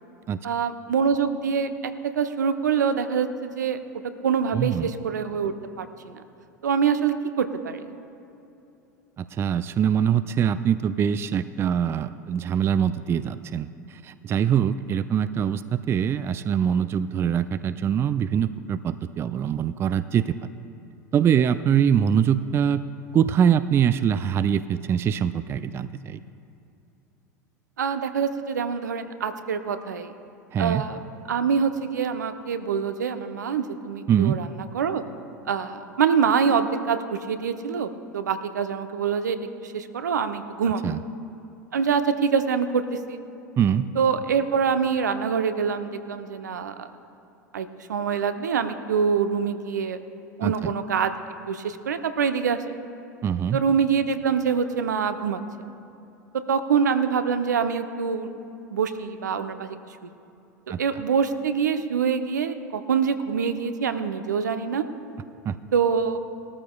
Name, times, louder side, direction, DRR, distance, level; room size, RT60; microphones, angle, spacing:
voice 1, 0.4-3.8 4.2-6.2 6.6-7.8 27.8-30.1 30.6-31.0 31.3-35.0 35.5-39.4 39.6-40.8 41.7-43.2 44.0-46.9 47.5-50.0 50.4-51.1 51.5-52.8 53.5-55.4 56.3-58.3 58.7-59.8 60.0-60.1 60.8-64.8 65.7-66.2, right 6 dB, 75° right, 9 dB, 0.8 m, -25 dB
voice 2, 4.5-4.9 9.2-20.3 21.1-22.8 23.1-26.2 30.5-30.8 34.1-34.4 40.8-41.0 43.6-43.9 50.4-50.7 53.2-53.6 60.7-60.8 65.5-65.6, right 8 dB, 25° right, 13 dB, 0.4 m, -23 dB
20.5 x 13.5 x 2.3 m, 2.8 s
figure-of-eight pair, 80°, 10 cm